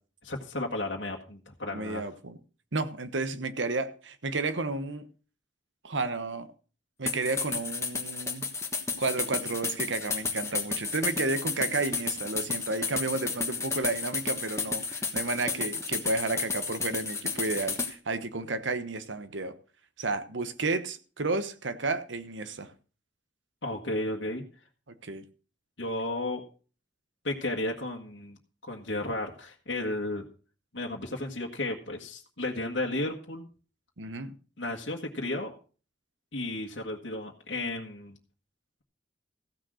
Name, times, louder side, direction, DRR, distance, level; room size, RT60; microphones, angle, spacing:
voice 1, 0.2-2.0 23.6-24.4 25.8-26.4 27.2-28.4 28.6-30.2 30.7-33.5 34.6-35.5 36.3-38.2, left 2 dB, 75° left, 1.6 m, -33 dB
voice 2, 1.7-2.4 2.7-5.1 5.8-6.5 7.0-8.5 9.0-19.5 20.0-22.7 25.0-25.2 34.0-34.3, right 3 dB, 85° right, 1.1 m, -32 dB
sound 1, 7.1-17.9, left 4 dB, 15° left, 1.4 m, -32 dB
15.0 x 6.3 x 6.4 m
head